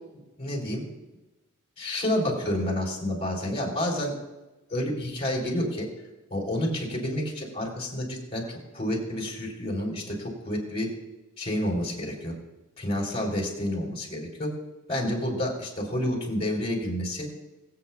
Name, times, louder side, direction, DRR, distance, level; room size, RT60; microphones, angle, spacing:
voice 1, 0.4-0.8 1.8-4.1 4.7-5.9 6.3-10.9 11.4-12.3 12.8-14.5 14.9-17.3, left 1 dB, 25° left, -1 dB, 3.5 m, -29 dB
24.5 x 8.4 x 2.3 m, 1.1 s
head